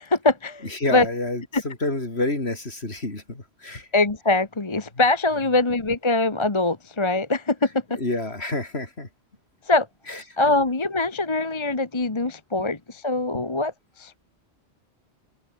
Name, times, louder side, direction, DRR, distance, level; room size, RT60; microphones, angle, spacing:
voice 1, 0.0-0.6 0.9-1.0 1.5-1.6 3.9-8.0 9.7-9.9 10.4-13.7 14.0-14.2, left 2 dB, 25° left, 1.3 m, -23 dB
voice 2, 0.6-3.9 4.9-5.0 7.9-9.1 10.1-10.6 13.3-13.5, left 2 dB, 65° left, 4.6 m, -29 dB
open air
omnidirectional pair, 1.2 m